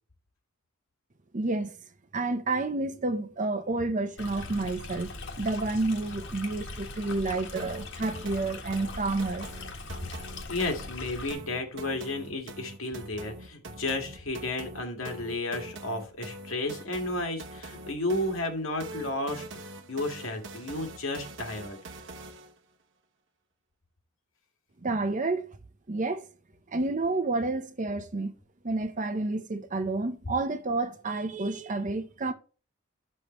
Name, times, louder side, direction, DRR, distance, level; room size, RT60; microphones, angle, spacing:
voice 1, 1.3-1.7 2.1-5.1 5.4-9.5 24.8-25.5 25.9-26.3 26.7-28.3 28.6-32.3, right 2 dB, 40° right, 0.8 m, -30 dB
Stream, 4.2-11.3, left 3 dB, 65° left, 1.6 m, -41 dB
sound 1, 7.6-22.6, right 2 dB, 65° right, 1.0 m, -44 dB
voice 2, 10.5-19.5 19.9-21.8, left 2 dB, 85° left, 1.9 m, -32 dB
11.0 x 6.6 x 3.1 m
head